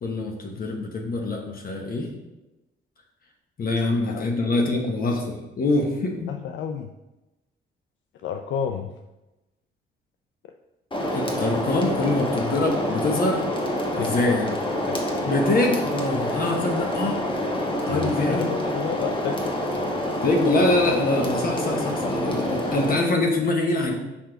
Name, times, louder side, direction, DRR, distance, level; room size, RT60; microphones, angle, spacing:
voice 1, 0.0-2.1 3.6-6.4 11.1-13.5 14.0-14.5 15.3-17.2 17.9-18.6 20.2-23.9, left 2 dB, 45° left, 2 dB, 1.0 m, -24 dB
voice 2, 4.1-4.4 6.3-6.9 8.1-8.9 14.0-14.4 14.9-15.0 17.9-19.6, left 7 dB, 70° left, 5 dB, 0.5 m, -31 dB
sound 1, 10.9-22.9, left 1 dB, 25° left, 1.2 m, -27 dB
5.5 x 4.8 x 3.8 m, 1.0 s
cardioid pair, 90°, 20 cm